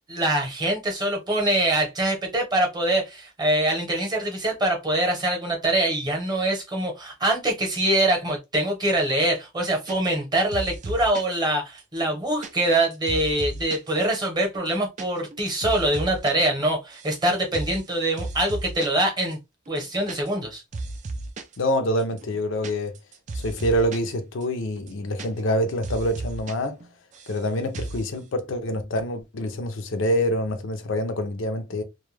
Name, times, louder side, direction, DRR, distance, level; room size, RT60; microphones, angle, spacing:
voice 1, 0.1-19.4 19.7-20.6, right 1 dB, 20° right, 0.8 m, -24 dB
sound 1, 9.9-10.3 10.5-11.3 11.8-13.9 14.2-14.3 14.5-15.1 15.3-16.3 16.6-17.2 17.5-17.8 18.2-19.0 19.3-19.4 19.7-20.5 20.7-21.6 22.0-24.1 24.4-24.5 24.8-25.6 25.8-26.5 26.8-27.4 27.7-28.1, right 2 dB, 35° right, 0.4 m, -35 dB
voice 2, 21.6-22.9 23.3-26.8 27.3-31.8, equal, 70° left, 0.5 m, -26 dB
2.3 x 2.1 x 3.1 m
head